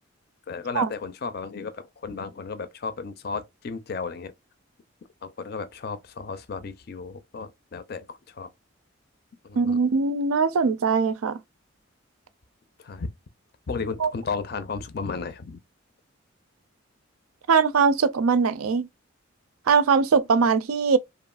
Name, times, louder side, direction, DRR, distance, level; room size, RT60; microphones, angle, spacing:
voice 1, 0.5-4.3 5.2-8.5 9.4-9.8 12.8-13.1 13.7-15.6, left 4 dB, 45° left, 0.4 m, -34 dB
voice 2, 9.6-11.4 14.0-14.1 17.5-18.9 19.7-21.0, right 5 dB, 90° right, 0.4 m, -21 dB
2.9 x 2.4 x 2.3 m
head